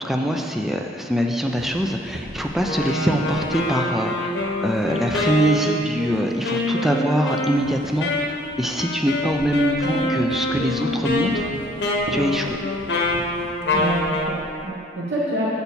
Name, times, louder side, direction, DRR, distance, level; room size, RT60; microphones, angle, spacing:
voice 1, 0.0-8.1 8.6-11.5 12.1-12.6, equal, ahead, 2 dB, 0.4 m, -23 dB
sound 1, 1.5-6.9 7.2-14.7, right 1 dB, 55° right, 0.9 m, -40 dB
Wind instrument woodwind instrument, 2.6-14.4, left 1 dB, 80° left, 1.2 m, -25 dB
voice 2, 13.7-15.5, right 1 dB, 80° right, -6 dB, 1.1 m, -27 dB
7.9 x 4.4 x 6.9 m, 2.3 s
head